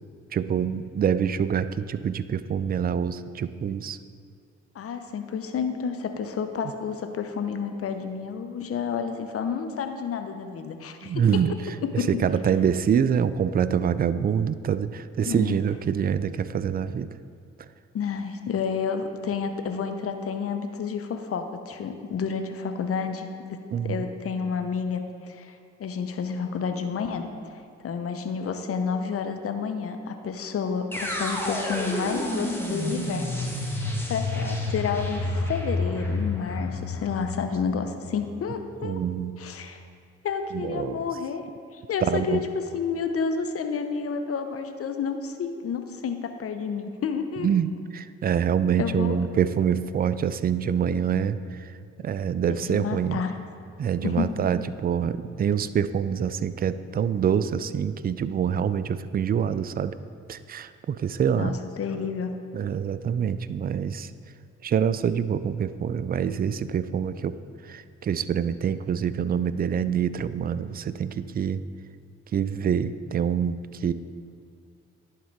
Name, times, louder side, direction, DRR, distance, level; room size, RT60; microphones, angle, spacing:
voice 1, 0.3-4.0 11.0-11.6 11.9-17.1 23.7-24.1 38.8-39.4 40.5-41.0 42.0-42.4 47.4-51.7 52.0-53.2 53.8-59.9 60.3-61.6 62.5-64.1 64.6-67.4 67.6-71.6 72.3-73.9, right 8 dB, 30° right, 14 dB, 0.4 m, -26 dB
voice 2, 4.7-11.4 11.8-12.1 15.3-15.6 17.9-23.6 23.8-27.3 27.8-39.0 39.4-39.8 40.2-41.4 41.7-47.5 48.8-49.2 52.5-53.3 54.0-54.3 61.4-62.3, left 6 dB, 50° left, 7 dB, 0.7 m, -30 dB
sound 1, 30.9-38.9, left 2 dB, 5° left, 1.5 m, -30 dB
11.0 x 3.7 x 4.6 m, 2.3 s
hypercardioid pair, 45°, 30 cm